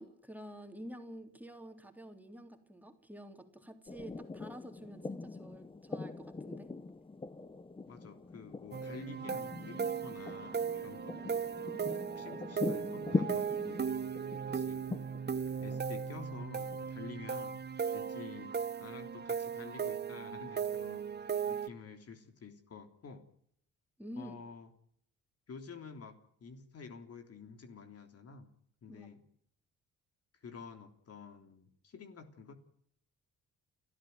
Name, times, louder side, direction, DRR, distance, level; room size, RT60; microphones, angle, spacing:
voice 1, 0.0-6.7 24.0-24.4 28.9-29.1, equal, 5° right, 5 dB, 3.5 m, -49 dB
sound 1, 3.9-16.9, left 3 dB, 15° left, 1.0 m, -41 dB
voice 2, 7.9-14.9 15.6-17.6 17.9-21.0 21.5-23.2 24.2-24.7 25.5-28.5 28.8-29.2 30.4-32.5, left 5 dB, 50° left, 7 dB, 3.4 m, -50 dB
sound 2, 8.7-21.7, right 7 dB, 35° right, 1.2 m, -37 dB
29.5 x 14.0 x 9.5 m, 0.69 s
cardioid pair, 90°, 30 cm